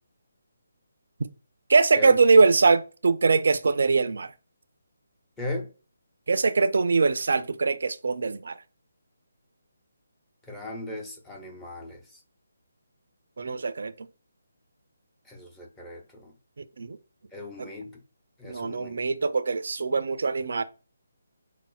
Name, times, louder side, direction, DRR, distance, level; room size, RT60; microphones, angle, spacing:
voice 1, 1.7-4.3 6.3-8.6 13.4-14.1 16.6-17.0 17.6-17.7 18.5-20.6, right 4 dB, 60° right, 0.4 m, -22 dB
voice 2, 5.4-5.7 10.4-12.2 15.2-16.3 17.3-17.9 18.4-19.0, left 2 dB, 10° left, 0.6 m, -38 dB
5.2 x 2.0 x 2.3 m
figure-of-eight pair, 150°, 0 cm